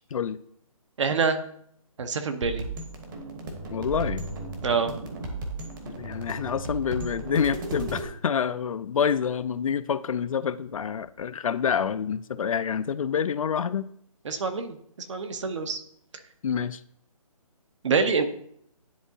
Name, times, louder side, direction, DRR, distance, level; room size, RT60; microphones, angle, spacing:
voice 1, 1.0-1.4 2.0-2.7 4.6-4.9 14.3-14.8 15.1-15.8 17.8-18.3, right 5 dB, 55° right, 8 dB, 0.9 m, -25 dB
sound 1, 2.4-8.1, right 2 dB, 35° right, 1.1 m, -35 dB
voice 2, 3.7-4.2 5.8-13.9 16.4-16.8, left 7 dB, 65° left, 14 dB, 0.4 m, -27 dB
10.0 x 3.6 x 2.8 m, 0.68 s
figure-of-eight pair, 155°, 19 cm